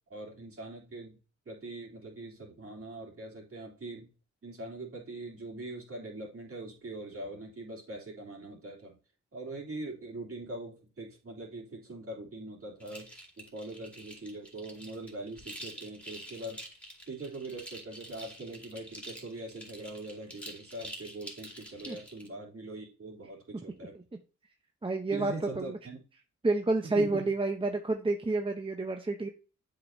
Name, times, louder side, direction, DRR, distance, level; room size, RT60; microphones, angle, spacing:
voice 1, 0.1-1.2 1.4-4.1 4.4-9.0 9.3-13.1 13.4-16.6 17.1-24.0 25.1-26.0 26.8-27.3, right 2 dB, 45° right, -2 dB, 3.1 m, -42 dB
sound 1, 12.8-22.3, equal, 5° left, 2.4 m, -47 dB
voice 2, 24.8-25.8 26.4-29.3, right 2 dB, 15° right, 4 dB, 0.8 m, -29 dB
7.7 x 5.2 x 2.7 m, 0.33 s
cardioid pair, 70°, 31 cm